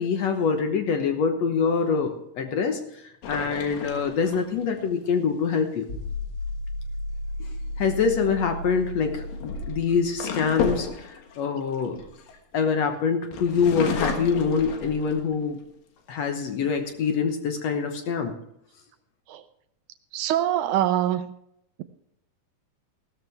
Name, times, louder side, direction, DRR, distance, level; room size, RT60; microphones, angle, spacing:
voice 1, 0.0-2.8 3.3-5.9 7.8-12.0 12.5-15.6 16.1-18.4, left 6 dB, 65° left, 6 dB, 2.0 m, -25 dB
sound 1, 3.2-4.8 7.8-8.1 9.1-12.8 13.3-15.4 16.0-16.1 16.4-17.0, left 5 dB, 90° left, 3.2 m, -33 dB
sound 2, 5.9-10.9, left 1 dB, 25° left, 4.1 m, -34 dB
voice 2, 20.1-21.3, right 12 dB, 80° right, 10 dB, 1.9 m, -24 dB
16.0 x 13.5 x 3.5 m, 0.77 s
omnidirectional pair, 3.8 m